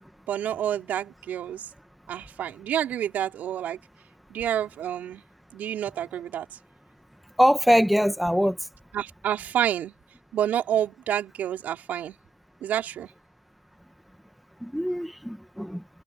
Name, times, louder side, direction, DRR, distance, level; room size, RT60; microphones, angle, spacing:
voice 1, 0.3-1.7 2.1-3.8 4.3-5.2 5.5-6.5 8.9-9.9 10.3-12.2 12.6-13.1, right 10 dB, 40° right, 4.0 m, -28 dB
voice 2, 7.4-8.6 14.6-15.8, equal, ahead, 1.3 m, -22 dB
supercardioid pair, 120°, 4 cm